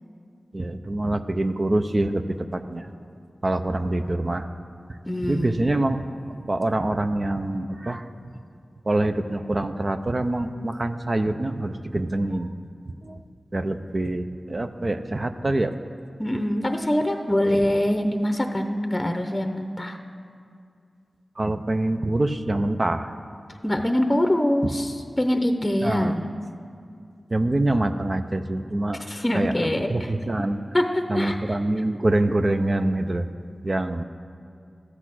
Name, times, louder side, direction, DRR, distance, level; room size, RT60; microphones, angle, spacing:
voice 1, 0.5-2.9 3.4-4.5 5.2-8.1 8.9-12.5 13.0-13.2 13.5-15.7 17.4-17.6 21.4-23.1 25.8-26.2 27.3-29.0 29.3-29.5 29.9-30.6 31.1-33.3 33.6-34.0, right 2 dB, 40° right, 8 dB, 0.6 m, -25 dB
voice 2, 5.1-5.7 16.2-20.0 23.6-26.3 29.1-30.1 30.7-31.6, left 1 dB, 20° left, 5 dB, 0.8 m, -24 dB
13.5 x 8.1 x 6.2 m, 2.4 s
cardioid pair, 50°, 0 cm